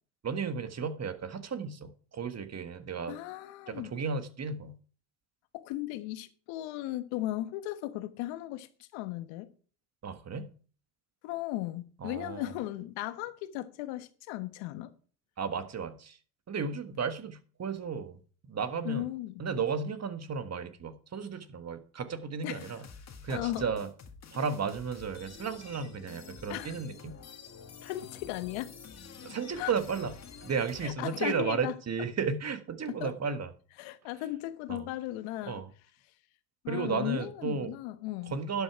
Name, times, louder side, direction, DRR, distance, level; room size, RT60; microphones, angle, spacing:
voice 1, 0.2-3.2 3.7-4.7 10.0-10.5 12.0-12.5 15.4-16.2 16.5-19.1 19.4-22.9 23.2-23.9 24.3-27.1 29.2-30.1 30.4-33.5 34.7-34.9 35.4-35.7 36.7-37.7 38.3-38.6, right 5 dB, 30° right, 1.5 m, -34 dB
voice 2, 3.1-3.9 5.5-9.5 11.2-14.9 18.8-19.4 22.4-22.7 23.3-23.7 26.5-26.7 27.8-28.7 29.6-29.7 30.8-31.7 33.0-33.1 33.8-35.6 36.6-38.3, left 15 dB, 70° left, 1.4 m, -36 dB
sound 1, 22.6-30.9, left 6 dB, 30° left, 2.1 m, -49 dB
11.5 x 8.2 x 4.7 m
hypercardioid pair, 75°, 50 cm